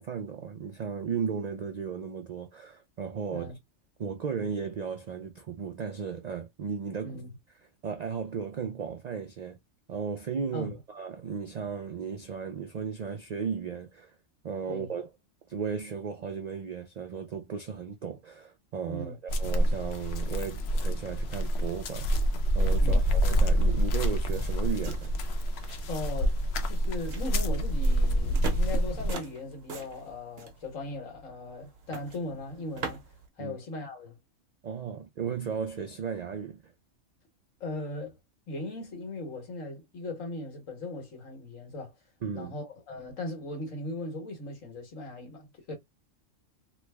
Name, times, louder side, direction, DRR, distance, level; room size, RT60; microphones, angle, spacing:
voice 1, 0.0-3.5 4.0-7.2 7.8-9.6 9.9-14.1 14.4-15.1 15.5-22.2 22.5-25.1 33.4-33.6 34.6-36.7 42.2-42.5, right 6 dB, 80° right, 0.3 m, -35 dB
voice 2, 7.0-7.3 10.5-10.8 14.7-14.9 18.9-19.2 22.8-23.0 25.9-33.0 33.4-34.2 37.6-38.2 38.5-41.9 42.3-45.7, left 2 dB, 80° left, 1.7 m, -38 dB
sound 1, 19.3-29.1, equal, 60° left, 0.8 m, -27 dB
sound 2, 24.1-33.3, right 4 dB, 55° right, 1.0 m, -44 dB
3.2 x 2.1 x 3.3 m
omnidirectional pair, 1.3 m